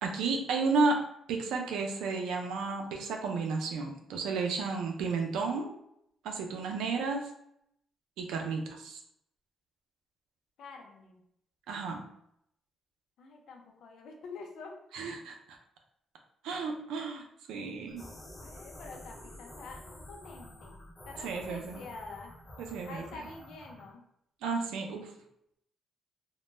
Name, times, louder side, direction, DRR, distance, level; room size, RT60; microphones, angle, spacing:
voice 1, 0.0-1.0 1.3-5.8 6.2-7.3 8.2-9.0 11.7-12.0 14.9-15.6 16.4-18.0 21.2-21.8 22.6-23.2 24.4-25.1, right 4 dB, 90° right, 2 dB, 0.4 m, -32 dB
voice 2, 10.6-11.2 13.2-14.8 18.4-19.8 20.1-20.8 21.0-22.3 22.9-24.0, left 4 dB, 70° left, 2 dB, 0.5 m, -47 dB
sound 1, 17.9-23.9, left 1 dB, 20° left, 0.5 m, -49 dB
2.1 x 2.0 x 3.1 m, 0.75 s
cardioid pair, 90°, 0 cm